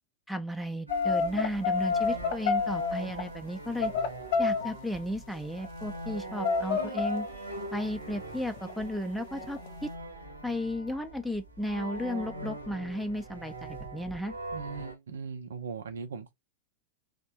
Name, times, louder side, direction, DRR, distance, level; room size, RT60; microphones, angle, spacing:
voice 1, 0.3-3.9 4.4-7.3 7.7-9.9 10.4-14.3, equal, ahead, 0.5 m, -34 dB
sound 1, 0.9-3.3 3.8-4.7 5.1-5.2 5.4-6.2 6.4-7.3 7.6-7.9 8.5-8.8 9.4-9.7, left 5 dB, 50° left, 0.8 m, -28 dB
sound 2, 0.9-14.9, right 2 dB, 80° right, 0.9 m, -42 dB
voice 2, 14.5-16.3, right 5 dB, 65° right, 0.6 m, -39 dB
3.3 x 2.1 x 2.8 m
figure-of-eight pair, 90°, 0 cm